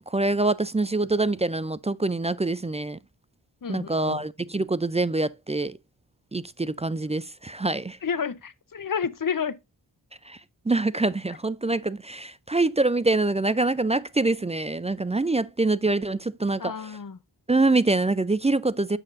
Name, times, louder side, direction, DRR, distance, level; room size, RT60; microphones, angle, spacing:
voice 1, 0.0-3.0 3.7-5.8 6.3-8.0 10.3-10.4 10.7-17.0 17.5-19.0, right 2 dB, 15° right, 0.3 m, -25 dB
voice 2, 3.6-4.3 8.0-9.6 16.6-17.2, left 6 dB, 45° left, 0.8 m, -30 dB
7.5 x 6.5 x 2.5 m
cardioid pair, 40°, 46 cm